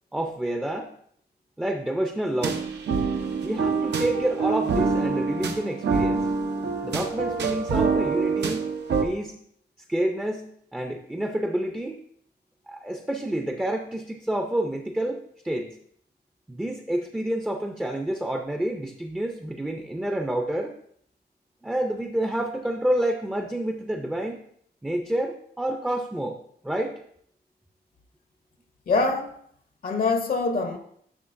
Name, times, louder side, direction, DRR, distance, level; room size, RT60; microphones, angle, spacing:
voice 1, 0.1-0.9 1.6-2.6 3.4-6.3 6.8-8.7 9.0-9.4 9.9-12.0 12.7-15.7 16.5-20.7 21.6-24.4 24.8-26.4 26.6-27.0, right 1 dB, 5° right, 0.4 m, -28 dB
sound 1, 2.4-9.0, right 5 dB, 90° right, 0.8 m, -26 dB
voice 2, 28.9-29.4 29.8-30.8, left 3 dB, 55° left, 0.7 m, -24 dB
11.0 x 6.3 x 2.5 m
wide cardioid pair, 170°, 17 cm